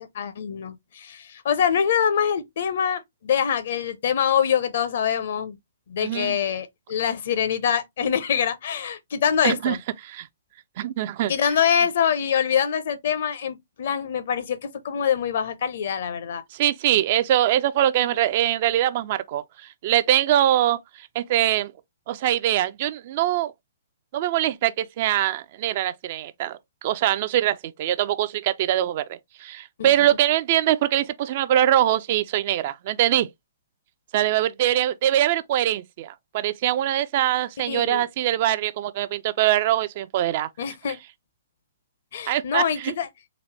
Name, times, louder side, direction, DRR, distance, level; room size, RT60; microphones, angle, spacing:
voice 1, 0.0-5.6 5.9-9.8 11.3-16.4 29.8-29.9 37.7-38.0 40.6-41.0 42.1-43.1, left 8 dB, 50° left, 0.7 m, -24 dB
voice 2, 6.0-6.4 9.4-9.8 10.0-10.3 10.8-11.3 16.5-21.7 22.1-23.5 24.1-33.3 34.1-40.5 42.3-42.9, right 12 dB, 40° right, 0.4 m, -23 dB
4.0 x 2.7 x 3.1 m
figure-of-eight pair, 120°, 0 cm